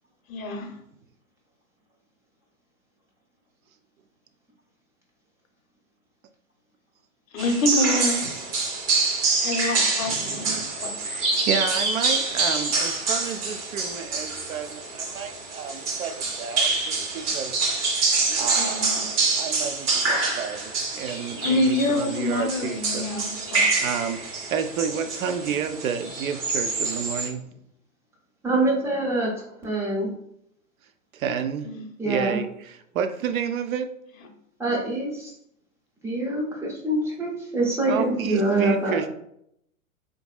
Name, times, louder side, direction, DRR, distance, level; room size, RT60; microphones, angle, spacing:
voice 1, 0.3-0.7 7.3-8.3 9.4-10.9 18.3-19.0 21.4-23.6 31.6-31.8, left 2 dB, 70° left, 6 dB, 0.7 m, -26 dB
sound 1, 7.4-27.3, right 3 dB, 30° right, 0.8 m, -26 dB
voice 2, 10.1-17.5 18.4-23.1 23.8-27.4 31.1-31.7 32.0-33.9 37.9-39.1, right 7 dB, 70° right, 8 dB, 0.5 m, -31 dB
voice 3, 28.4-29.3 29.6-30.1 32.0-32.4 34.6-35.3 36.0-39.0, right 2 dB, 5° right, -4 dB, 0.4 m, -25 dB
3.5 x 2.6 x 2.3 m, 0.74 s
hypercardioid pair, 115°, 42 cm